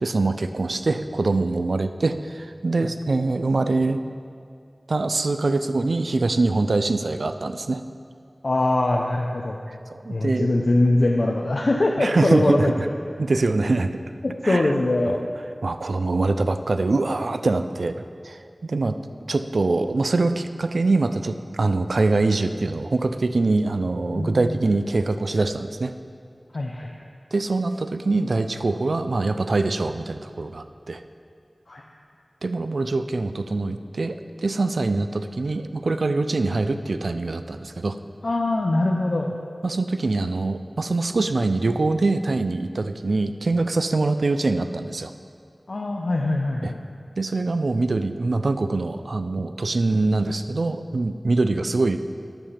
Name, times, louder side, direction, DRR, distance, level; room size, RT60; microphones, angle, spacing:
voice 1, 0.0-4.0 4.9-7.8 9.7-10.6 12.0-12.7 13.2-14.0 14.4-14.7 15.1-15.2 15.6-19.0 19.3-25.9 27.3-31.0 32.4-38.0 39.6-45.1 46.6-46.7 47.2-52.0, right 3 dB, 90° right, 9 dB, 0.4 m, -24 dB
voice 2, 8.4-9.6 10.1-12.9 14.2-15.2 24.1-24.5 26.5-26.9 31.7-31.8 38.2-39.3 45.7-46.8, left 2 dB, 70° left, 0 dB, 0.6 m, -22 dB
9.0 x 6.9 x 5.6 m, 2.3 s
wide cardioid pair, 55°, 0 cm